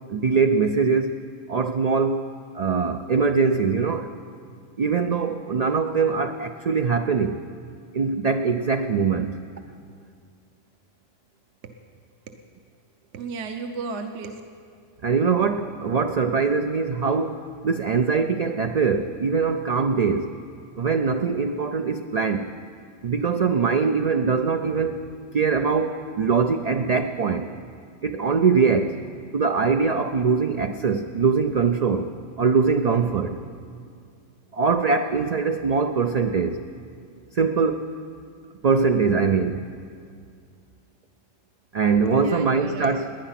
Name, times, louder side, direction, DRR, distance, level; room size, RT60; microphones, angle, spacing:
voice 1, 0.1-1.2 1.5-2.3 2.5-4.1 4.8-7.4 7.9-9.4 15.0-20.3 20.8-22.5 23.0-25.0 25.3-27.5 28.0-29.0 29.3-32.1 32.4-33.4 34.5-36.6 37.3-37.9 38.6-39.7 41.7-43.1, right 5 dB, 85° right, 7 dB, 0.3 m, -22 dB
voice 2, 13.1-14.4 42.0-43.0, right 4 dB, 65° right, 6 dB, 1.0 m, -34 dB
19.5 x 10.0 x 5.8 m, 2.3 s
omnidirectional pair, 1.3 m